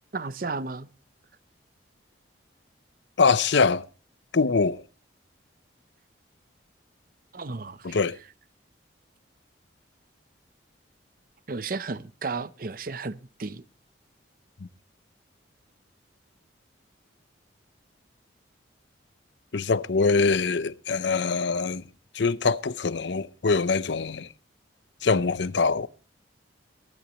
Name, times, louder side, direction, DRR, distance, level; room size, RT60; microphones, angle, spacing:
voice 1, 0.1-0.9 7.3-8.0 11.5-13.6, right 3 dB, 45° right, 0.6 m, -33 dB
voice 2, 3.2-3.9 4.3-4.8 7.8-8.2 19.5-21.8 22.1-24.3 25.0-25.9, left 4 dB, 70° left, 0.6 m, -23 dB
22.5 x 11.5 x 2.9 m
head